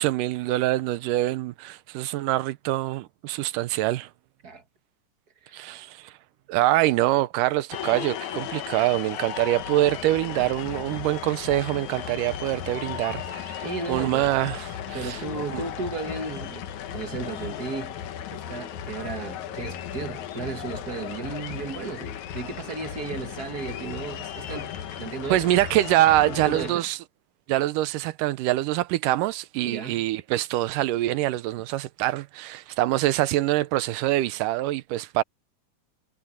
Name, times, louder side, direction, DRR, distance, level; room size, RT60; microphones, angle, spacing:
voice 1, 0.0-4.1 5.5-6.1 6.5-15.2 15.5-15.6 25.3-27.0 27.5-35.2, right 15 dB, 85° right, 2.3 m, -25 dB
sound 1, 7.7-26.7, left 10 dB, 65° left, 2.5 m, -36 dB
voice 2, 13.6-14.3 14.9-18.0 18.3-25.5 26.2-26.9 29.6-30.0, right 4 dB, 45° right, 1.3 m, -35 dB
omnidirectional pair, 3.7 m